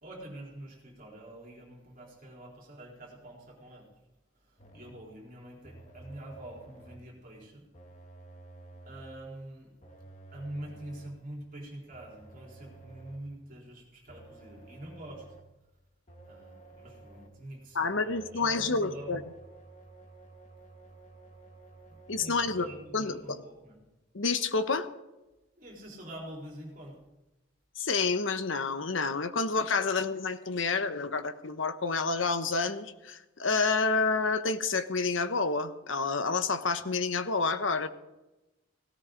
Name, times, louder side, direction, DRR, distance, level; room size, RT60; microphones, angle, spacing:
voice 1, 0.0-3.9 4.4-7.6 8.8-9.7 10.3-15.3 16.3-19.2 21.9-23.8 25.6-27.0, right 1 dB, 45° right, -1 dB, 4.0 m, -46 dB
sound 1, 4.6-5.1 5.6-7.2 7.7-9.2 9.8-11.3 11.9-13.4 14.1-15.6 16.1-17.5 18.1-22.8, right 2 dB, 35° left, 1.7 m, -52 dB
voice 2, 17.7-19.2 22.1-22.7 22.9-23.4 24.1-24.9 27.8-37.9, left 4 dB, 75° left, 10 dB, 1.1 m, -29 dB
18.0 x 17.0 x 3.9 m, 1.0 s
head